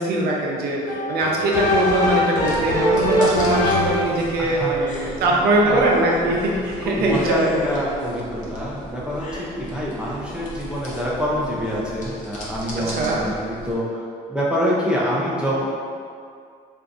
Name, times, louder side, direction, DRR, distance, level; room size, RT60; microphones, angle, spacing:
voice 1, 0.0-8.1 12.9-13.2, right 1 dB, 70° right, -2 dB, 0.6 m, -21 dB
sound 1, 0.9-4.2, equal, 80° left, 0.9 m, -21 dB
sound 2, 2.4-13.7, left 1 dB, 50° left, 0.7 m, -37 dB
voice 2, 4.4-4.7 5.0-5.9 6.8-14.0 14.3-15.6, equal, 5° right, -7 dB, 0.5 m, -26 dB
3.5 x 2.6 x 2.5 m, 2.2 s
cardioid pair, 110°, 17 cm